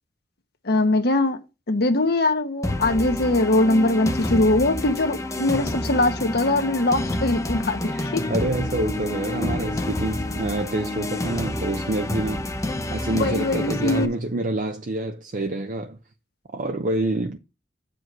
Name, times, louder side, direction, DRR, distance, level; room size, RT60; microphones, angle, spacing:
voice 1, 0.6-1.4 1.7-8.3 13.1-14.1, left 2 dB, 60° left, 1.1 m, -21 dB
sound 1, 2.6-14.1, left 1 dB, 20° left, 0.8 m, -29 dB
voice 2, 7.9-16.0 16.5-17.4, right 2 dB, 45° right, 0.7 m, -27 dB
7.9 x 5.1 x 6.1 m
head